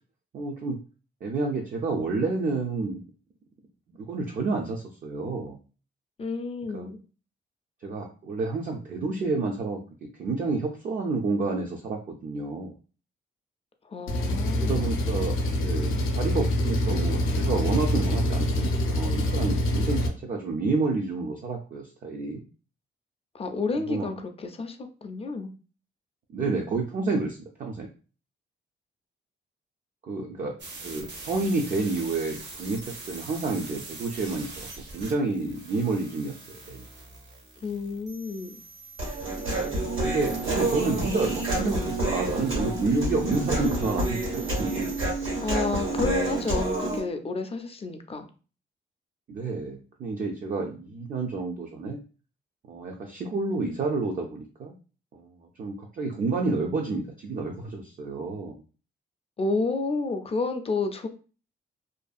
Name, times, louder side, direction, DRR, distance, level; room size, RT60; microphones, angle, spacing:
voice 1, 0.3-0.8 1.2-3.0 3.9-5.6 6.7-6.9 7.8-12.7 14.5-22.4 23.8-24.1 26.3-27.9 30.0-30.6 30.8-34.7 34.9-36.8 39.4-44.9 49.3-52.0 52.7-54.8 55.1-55.3 55.6-58.6, right 3 dB, 45° right, 1 dB, 0.4 m, -30 dB
voice 2, 6.2-7.0 13.9-14.8 23.3-25.5 37.6-38.6 45.4-48.3 59.4-61.1, left 3 dB, 30° left, 6 dB, 0.4 m, -30 dB
Engine, 14.1-20.1, left 1 dB, 90° left, 0.5 m, -25 dB
sound 1, 30.6-45.1, right 3 dB, 60° right, 0.8 m, -44 dB
Human voice, 39.0-47.0, right 2 dB, 90° right, 1.4 m, -28 dB
2.5 x 2.3 x 2.4 m, 0.36 s
cardioid pair, 95°, 20 cm